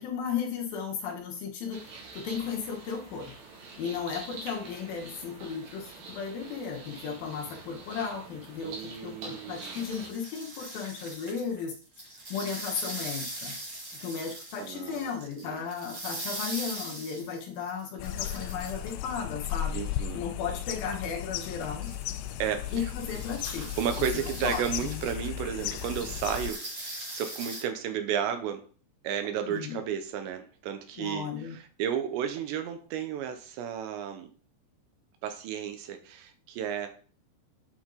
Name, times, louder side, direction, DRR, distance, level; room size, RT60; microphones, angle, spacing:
voice 1, 0.0-3.3 3.8-11.7 12.3-13.6 14.0-19.8 20.1-21.9 22.7-23.7 24.1-25.1 29.5-29.8 31.0-31.6, left 6 dB, 65° left, 1 dB, 2.7 m, -35 dB
sound 1, 1.7-10.1, right 3 dB, 70° right, 4.1 m, -46 dB
voice 2, 8.6-9.8 14.6-15.1 15.4-15.6 19.7-20.2 22.4-22.9 23.8-28.6 29.0-34.3 35.2-37.0, right 8 dB, 90° right, 7 dB, 3.3 m, -33 dB
sound 2, 9.5-19.2 20.7-20.8 21.4-27.6, right 1 dB, 30° right, 3.2 m, -41 dB
sound 3, 18.0-26.5, left 12 dB, 85° left, 2.3 m, -35 dB
8.3 x 6.3 x 3.9 m, 0.41 s
omnidirectional pair, 5.0 m